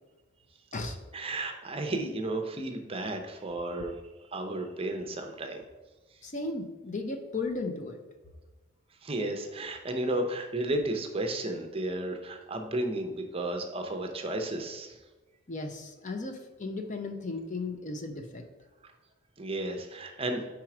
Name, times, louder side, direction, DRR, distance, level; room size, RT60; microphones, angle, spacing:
voice 1, 1.1-3.9 4.3-5.6 9.0-14.9 19.4-20.4, right 1 dB, 30° right, 4 dB, 0.7 m, -33 dB
voice 2, 6.2-8.0 15.5-18.5, left 3 dB, 35° left, 6 dB, 0.6 m, -35 dB
4.9 x 4.5 x 5.9 m, 1.2 s
head